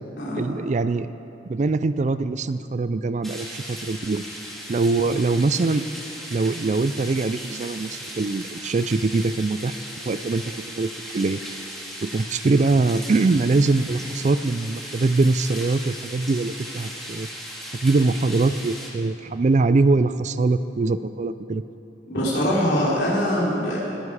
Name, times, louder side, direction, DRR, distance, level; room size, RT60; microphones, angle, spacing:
voice 1, 0.4-1.1 1.5-4.2 4.7-5.8 6.3-9.8 10.1-10.4 10.8-11.4 12.0-17.3 17.8-21.6, right 3 dB, 40° right, 13 dB, 0.4 m, -22 dB
sound 1, 3.2-18.9, equal, ahead, 2.2 m, -37 dB
voice 2, 22.1-23.8, equal, 65° left, -5 dB, 3.8 m, -23 dB
21.0 x 10.0 x 4.9 m, 2.8 s
head